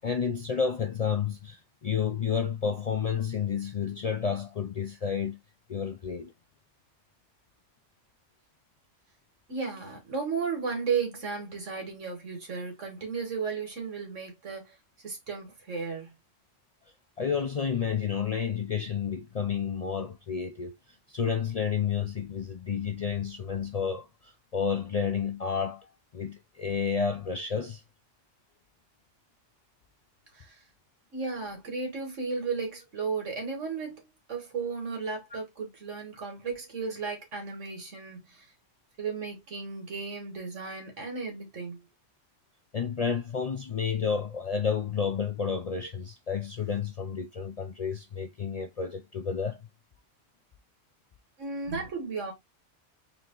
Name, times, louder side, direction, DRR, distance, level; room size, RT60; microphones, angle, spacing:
voice 1, 0.0-5.4 5.7-6.3 17.2-20.7 21.1-27.8 42.7-49.6, left 6 dB, 55° left, 0.4 m, -30 dB
voice 2, 9.5-14.7 15.0-16.1 30.3-30.6 31.1-38.5 39.0-41.9 51.4-52.3, right 5 dB, 85° right, 2.1 m, -34 dB
3.9 x 2.9 x 3.7 m
omnidirectional pair, 1.2 m